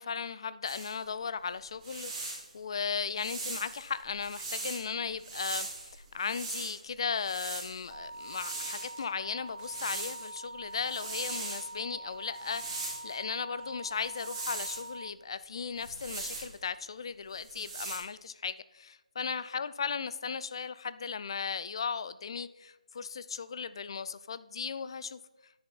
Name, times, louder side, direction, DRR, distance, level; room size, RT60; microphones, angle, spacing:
voice 1, 0.0-25.5, left 6 dB, 40° left, 16 dB, 0.4 m, -36 dB
sound 1, 0.6-0.9 1.6-2.5 3.2-4.8 5.2-6.7 7.2-9.0 9.6-10.3 10.7-11.7 12.3-13.1 14.0-14.9 15.8-16.5 17.3-18.0, right 3 dB, 15° right, 2.3 m, -40 dB
sound 2, 7.9-15.1, right 2 dB, 60° right, 0.7 m, -45 dB
10.0 x 5.5 x 4.2 m, 1.1 s
figure-of-eight pair, 160°, 4 cm